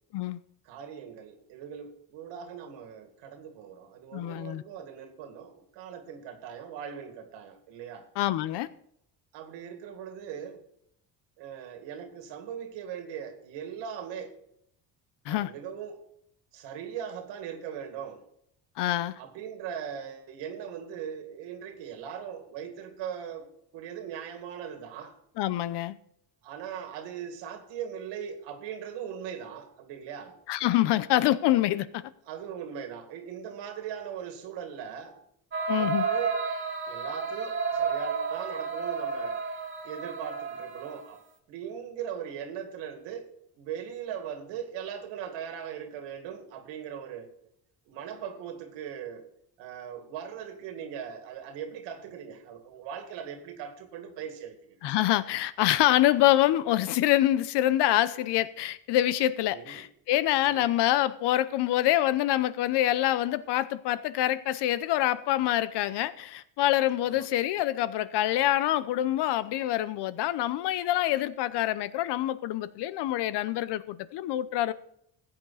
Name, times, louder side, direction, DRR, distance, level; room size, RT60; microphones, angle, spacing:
voice 1, 0.7-8.1 9.3-10.6 11.4-14.4 15.3-16.0 16.5-18.2 19.2-23.5 23.7-25.2 26.4-30.4 32.3-35.2 35.8-36.3 36.9-39.4 39.8-41.2 41.5-47.3 47.9-49.3 49.6-54.8 59.5-59.9 60.4-60.7 67.0-67.3, right 8 dB, 85° right, 2.2 m, -40 dB
voice 2, 4.1-4.6 8.2-8.7 15.3-15.5 18.8-19.1 25.4-26.0 30.5-32.1 35.7-36.1 54.8-74.7, left 14 dB, 70° left, 0.8 m, -26 dB
sound 1, 35.5-41.1, right 5 dB, 30° right, 1.8 m, -31 dB
15.0 x 8.9 x 4.1 m
cardioid pair, 100°, 42 cm